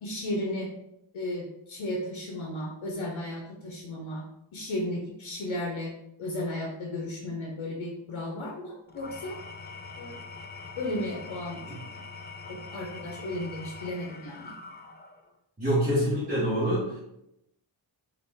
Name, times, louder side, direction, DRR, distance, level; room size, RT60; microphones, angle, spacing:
voice 1, 0.0-0.7 1.1-4.2 4.5-5.9 6.2-9.3 10.0-10.2 10.8-11.6 12.7-14.6, left 1 dB, 75° left, -1 dB, 0.8 m, -34 dB
Engine / Tools, 8.9-15.3, left 4 dB, 25° left, 0.3 m, -43 dB
voice 2, 15.6-17.0, equal, 15° right, -11 dB, 1.4 m, -26 dB
4.0 x 2.6 x 3.6 m, 0.83 s
wide cardioid pair, 105°, 47 cm